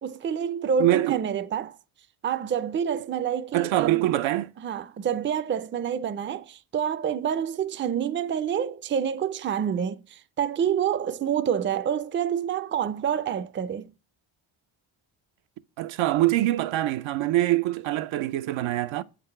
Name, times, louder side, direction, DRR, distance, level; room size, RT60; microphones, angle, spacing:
voice 1, 0.0-1.8 2.2-4.1 4.6-13.9, right 8 dB, 25° right, 0.4 m, -28 dB
voice 2, 0.8-1.2 3.5-4.5 15.8-19.0, right 15 dB, 75° right, 0.6 m, -24 dB
7.4 x 4.0 x 5.3 m
cardioid pair, 70°, 48 cm